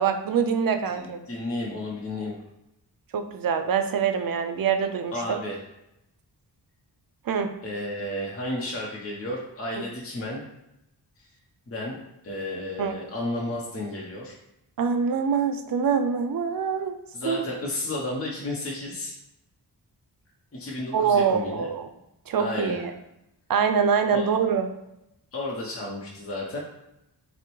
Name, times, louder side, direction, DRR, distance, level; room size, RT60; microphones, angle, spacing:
voice 1, 0.0-1.2 3.1-5.4 7.3-7.5 12.8-12.9 14.8-17.0 17.2-17.4 20.9-21.9 22.3-22.9 23.5-24.7, right 6 dB, 55° right, 7 dB, 0.5 m, -24 dB
voice 2, 0.9-2.4 5.1-5.6 7.6-10.4 11.7-12.0 12.2-14.3 17.1-19.1 20.5-21.7 22.4-22.8 24.1-24.3 25.3-26.6, left 1 dB, 35° left, -3 dB, 0.8 m, -32 dB
5.7 x 2.1 x 3.1 m, 0.86 s
cardioid pair, 70°, 41 cm